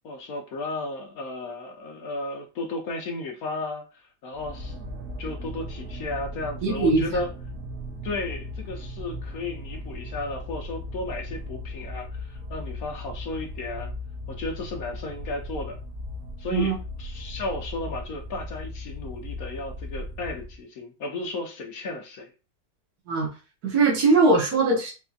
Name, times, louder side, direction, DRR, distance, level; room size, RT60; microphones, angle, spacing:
voice 1, 0.0-4.9 5.2-7.3 8.0-13.9 14.3-15.8 16.4-22.3, left 2 dB, 70° left, 1.2 m, -34 dB
sound 1, 4.3-20.6, left 1 dB, 60° right, 1.0 m, -37 dB
voice 2, 6.6-7.2 16.5-16.7 23.1-23.3 23.6-24.9, right 3 dB, 80° right, 1.5 m, -21 dB
4.2 x 2.7 x 2.3 m
omnidirectional pair, 1.6 m